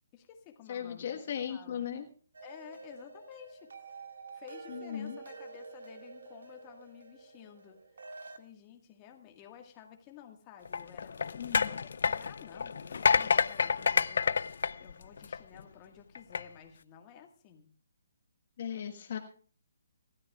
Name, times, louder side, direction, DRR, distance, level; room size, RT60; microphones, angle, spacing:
voice 1, 0.1-1.1 1.5-1.9 2.4-3.7 4.3-17.7, left 9 dB, 25° left, 3 dB, 1.7 m, -53 dB
voice 2, 0.7-2.1 4.7-5.2 11.3-11.8 18.6-19.2, left 9 dB, 45° left, 5 dB, 1.4 m, -37 dB
sound 1, 2.3-8.4, right 4 dB, 80° right, 1.9 m, -48 dB
sound 2, 10.7-15.6 16.2-16.4, left 6 dB, 65° left, 0.5 m, -29 dB
25.5 x 13.0 x 2.4 m, 0.43 s
hypercardioid pair, 160°, 0 cm